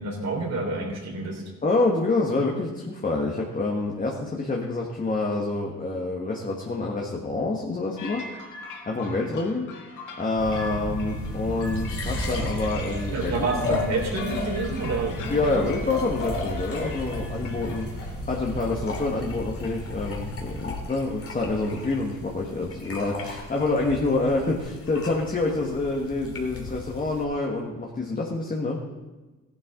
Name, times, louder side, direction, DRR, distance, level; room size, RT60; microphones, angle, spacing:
voice 1, 0.0-1.4 13.1-15.6, right 3 dB, 60° right, 0 dB, 3.5 m, -28 dB
voice 2, 1.6-8.2 8.9-9.7 10.2-13.3 15.3-28.8, left 3 dB, 25° left, -1 dB, 1.6 m, -27 dB
sound 1, 8.0-17.8, left 3 dB, 85° left, 2.0 m, -42 dB
sound 2, 10.4-20.7, right 1 dB, 5° right, 2.6 m, -34 dB
sound 3, 11.1-27.2, left 3 dB, 50° left, 2.7 m, -37 dB
15.0 x 11.0 x 3.9 m, 1.2 s
cardioid pair, 90°, 30 cm